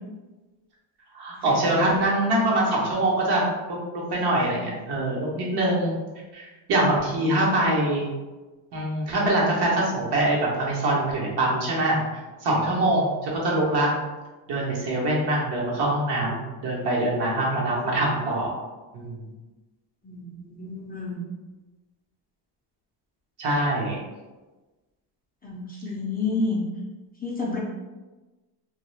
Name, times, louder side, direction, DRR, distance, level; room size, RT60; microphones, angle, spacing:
voice 1, 1.1-3.4 3.9-5.9 6.3-8.1 8.7-13.9 14.5-18.5 18.9-19.3 23.4-24.0, right 1 dB, 65° right, -4 dB, 1.0 m, -24 dB
voice 2, 20.0-21.2 25.4-26.6 27.2-27.6, left 3 dB, 25° left, -5 dB, 0.3 m, -29 dB
2.3 x 2.2 x 3.2 m, 1.2 s
cardioid pair, 135°, 43 cm